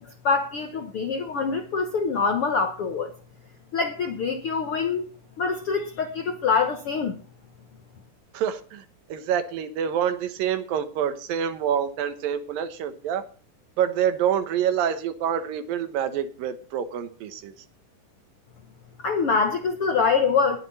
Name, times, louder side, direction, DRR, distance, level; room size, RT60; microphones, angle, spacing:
voice 1, 0.2-3.1 3.7-5.0 5.4-7.1 19.0-20.6, left 5 dB, 65° left, 1.4 m, -24 dB
voice 2, 8.3-8.8 9.1-13.2 13.8-17.5, right 9 dB, 75° right, 2.9 m, -27 dB
20.0 x 7.8 x 4.2 m
omnidirectional pair, 4.1 m